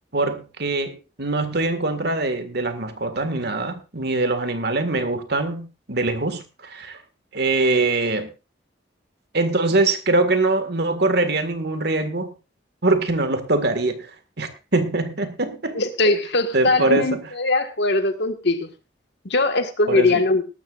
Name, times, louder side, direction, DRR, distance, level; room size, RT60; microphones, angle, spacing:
voice 1, 0.1-7.0 7.3-8.3 9.3-12.3 12.8-14.1 14.4-15.8 16.5-17.2 19.9-20.2, right 2 dB, 60° right, 9 dB, 1.9 m, -23 dB
voice 2, 15.7-18.7 19.2-20.4, left 2 dB, 65° left, 7 dB, 1.7 m, -21 dB
18.5 x 13.0 x 2.5 m, 0.29 s
head